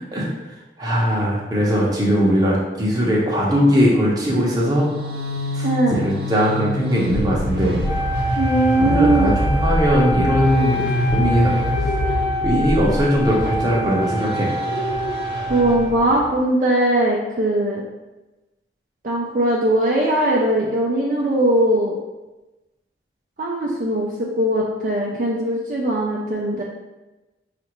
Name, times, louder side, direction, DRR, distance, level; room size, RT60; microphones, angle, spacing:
voice 1, 0.8-4.9 5.5-5.7 6.0-7.8 8.8-10.8 11.1-11.5 11.8-11.9 12.4-14.5, equal, 20° right, -4 dB, 0.8 m, -19 dB
sound 1, 4.5-16.3, equal, 80° right, 0.8 m, -26 dB
voice 2, 5.6-6.0 8.4-9.3 15.5-17.8 19.0-22.0 23.4-26.6, right 1 dB, 45° right, -3 dB, 0.4 m, -20 dB
Wind instrument woodwind instrument, 7.8-16.1, left 1 dB, 10° left, 0.7 m, -27 dB
sound 2, 10.5-11.0 11.7-12.2 12.5-13.0 13.7-14.1 14.6-15.2, left 1 dB, 80° left, 1.0 m, -30 dB
5.2 x 2.5 x 3.0 m, 1.1 s
head